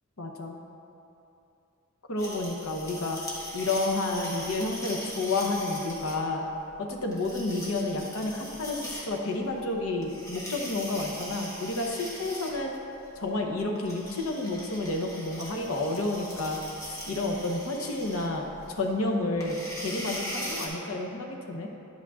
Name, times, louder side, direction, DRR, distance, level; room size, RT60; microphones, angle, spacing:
voice 1, 0.2-0.6 2.1-3.2 3.5-6.4 6.8-12.7 13.2-16.6 16.8-21.7, left 2 dB, 80° left, 1 dB, 0.9 m, -30 dB
sound 1, 2.2-20.7, equal, 15° left, 1.2 m, -41 dB
10.5 x 8.4 x 2.5 m, 2.9 s
head